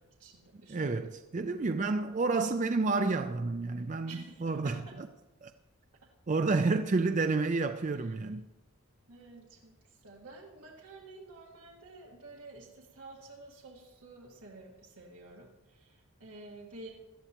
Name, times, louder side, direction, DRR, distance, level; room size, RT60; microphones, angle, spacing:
voice 1, 0.0-1.1 4.1-4.9 8.0-8.1 9.1-16.9, right 2 dB, 90° right, 1.8 m, -51 dB
voice 2, 0.7-4.8 5.4-5.5 6.3-8.4, right 3 dB, 35° right, 0.4 m, -30 dB
17.5 x 12.5 x 3.0 m
head